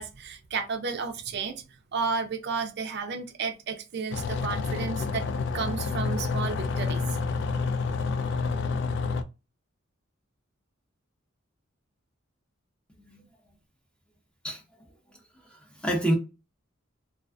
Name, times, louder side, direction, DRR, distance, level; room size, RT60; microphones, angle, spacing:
voice 1, 0.0-1.6 1.9-5.3 5.5-7.0, right 5 dB, 55° right, 0.4 m, -32 dB
sound 1, 4.1-9.2, left 4 dB, 60° left, 0.3 m, -29 dB
voice 2, 15.5-16.2, right 1 dB, 5° left, 0.5 m, -28 dB
2.3 x 2.3 x 2.4 m
head